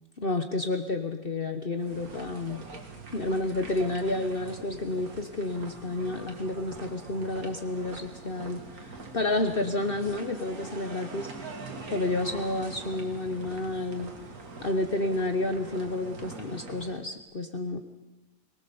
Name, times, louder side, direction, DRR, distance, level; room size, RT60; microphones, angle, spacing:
voice 1, 0.2-2.6 3.1-11.3 11.9-14.1 14.6-17.8, left 2 dB, 40° left, 7 dB, 1.2 m, -30 dB
sound 1, 1.8-17.0, right 3 dB, 75° right, 2.4 m, -43 dB
23.0 x 18.5 x 7.0 m, 1.1 s
omnidirectional pair, 1.6 m